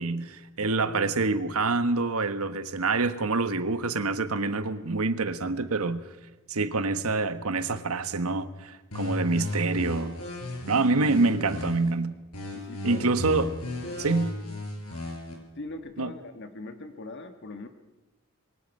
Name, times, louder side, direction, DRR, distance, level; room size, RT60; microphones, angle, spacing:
voice 1, 0.0-6.0 6.5-10.2 10.7-12.2 12.8-13.6 14.0-14.3 16.0-16.1, right 3 dB, 80° right, 1.3 m, -26 dB
sound 1, 8.9-11.9 12.3-15.3, left 1 dB, 80° left, 5.8 m, -35 dB
voice 2, 12.5-13.1 13.9-14.1 15.6-17.7, left 2 dB, 55° left, 1.5 m, -41 dB
26.5 x 22.5 x 5.5 m
head